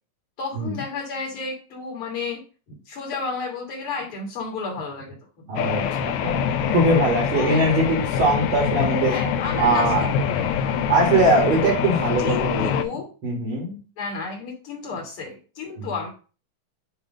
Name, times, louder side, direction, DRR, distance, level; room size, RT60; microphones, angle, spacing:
voice 1, 0.4-2.4 2.7-5.5 7.3-7.7 9.0-10.7 12.2-13.1 14.0-16.1, left 4 dB, 45° left, -1 dB, 2.5 m, -32 dB
voice 2, 5.5-9.2 9.6-10.1 10.9-12.7 13.2-13.8 15.8-15.9, right 2 dB, 45° right, -1 dB, 2.2 m, -21 dB
sound 1, 5.6-12.8, left 7 dB, 75° left, 1.8 m, -24 dB
8.2 x 3.3 x 4.9 m, 0.35 s
omnidirectional pair, 3.6 m